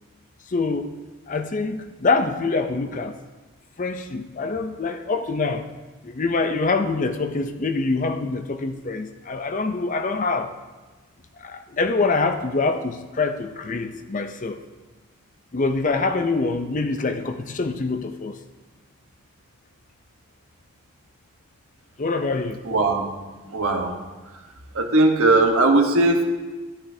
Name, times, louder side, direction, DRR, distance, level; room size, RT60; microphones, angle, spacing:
voice 1, 0.5-0.9 1.3-3.2 3.8-5.7 6.0-10.5 11.4-14.6 15.5-18.4 22.0-22.6, left 3 dB, 35° left, 0.5 m, -25 dB
voice 2, 22.6-23.1 23.5-24.0 24.7-26.2, right 2 dB, 75° right, 1.2 m, -19 dB
13.5 x 10.0 x 2.7 m
head